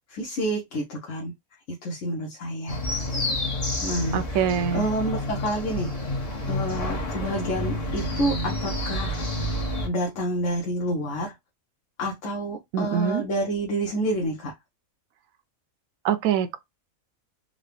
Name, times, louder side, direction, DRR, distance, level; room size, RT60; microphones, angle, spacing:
voice 1, 0.1-1.3 1.8-2.8 3.8-4.2 4.7-5.9 6.5-9.3 9.8-11.3 12.0-14.5, right 1 dB, 65° left, 1.2 m, -28 dB
sound 1, 2.7-9.9, left 1 dB, 30° left, 0.9 m, -29 dB
voice 2, 4.1-4.9 12.7-13.2 16.0-16.6, right 8 dB, 75° right, 1.0 m, -24 dB
3.9 x 2.2 x 3.3 m
omnidirectional pair, 1.5 m